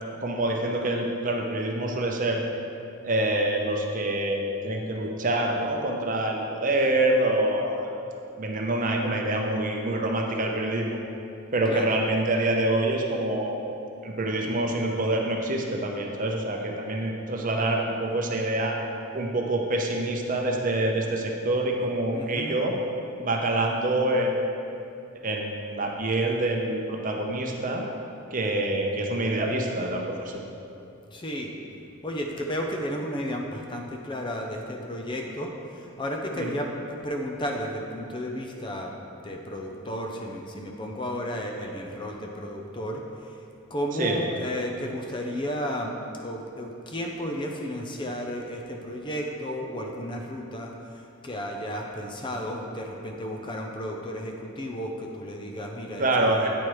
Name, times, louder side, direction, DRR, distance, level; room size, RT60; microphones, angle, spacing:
voice 1, 0.2-2.4 3.0-7.9 8.4-11.0 11.5-13.6 14.0-18.8 19.1-22.7 23.2-24.3 25.2-27.8 28.3-30.4 36.3-36.5 44.0-44.2 56.0-56.5, right 1 dB, 40° right, 1 dB, 0.7 m, -26 dB
voice 2, 22.1-22.6 31.1-31.5 32.0-39.0 39.2-43.4 43.7-45.9 46.2-56.5, equal, 25° left, 1 dB, 0.5 m, -33 dB
8.7 x 4.6 x 4.7 m, 2.6 s
head